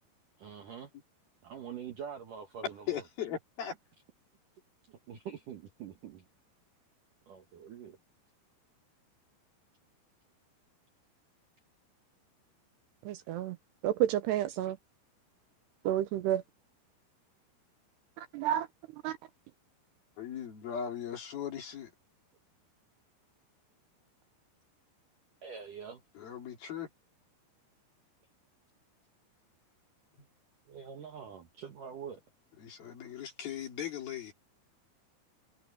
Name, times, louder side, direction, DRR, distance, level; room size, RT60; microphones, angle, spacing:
voice 1, 0.4-0.9 1.4-3.0 4.9-6.3 7.3-8.0 25.4-26.0 30.7-32.2, right 7 dB, 55° right, 2.6 m, -45 dB
voice 2, 2.9-3.8 20.2-21.9 26.2-26.9 32.6-34.3, left 9 dB, 50° left, 5.1 m, -38 dB
voice 3, 13.0-13.6 13.8-14.8 15.8-16.4 18.2-18.7 19.0-19.2, right 12 dB, 75° right, 2.6 m, -30 dB
omnidirectional pair, 5.6 m